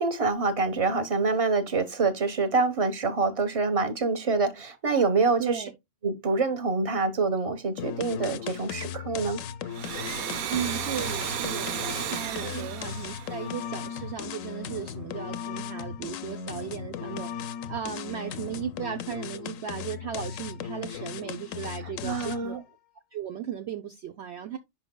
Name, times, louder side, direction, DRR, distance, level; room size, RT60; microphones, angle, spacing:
voice 1, 0.0-5.6 6.0-9.4 12.4-12.7 22.0-22.6, right 4 dB, 25° right, 1.2 m, -26 dB
voice 2, 5.4-5.7 10.5-22.6 23.1-24.6, right 9 dB, 60° right, 0.9 m, -36 dB
sound 1, 7.8-22.6, left 8 dB, 75° left, 1.0 m, -37 dB
Domestic sounds home sounds, 9.6-14.1, right 9 dB, 85° right, 1.2 m, -34 dB
10.5 x 5.4 x 2.2 m
omnidirectional pair, 1.4 m